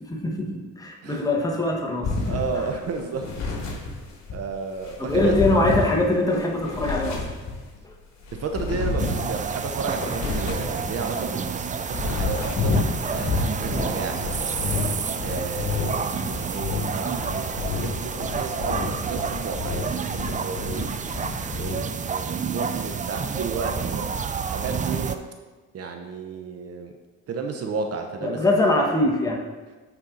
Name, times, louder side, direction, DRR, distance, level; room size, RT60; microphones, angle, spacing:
voice 1, 0.0-2.1 5.0-7.2 7.8-7.9 14.0-14.1 15.4-15.5 28.2-29.4, left 2 dB, 10° left, -1 dB, 1.3 m, -23 dB
sound 1, 2.0-4.4 4.8-7.8 8.2-11.2 11.7-21.8, left 3 dB, 60° left, 1.9 m, -29 dB
voice 2, 2.2-3.3 3.8-3.9 4.3-5.4 8.3-12.8 13.1-14.7 15.2-20.9 21.2-25.2 25.7-26.9 27.3-28.4, right 5 dB, 55° right, 5 dB, 0.7 m, -33 dB
sound 2, 9.0-25.2, right 6 dB, 25° right, 0.4 m, -29 dB
9.6 x 4.4 x 3.9 m, 1.3 s
cardioid pair, 90°, 30 cm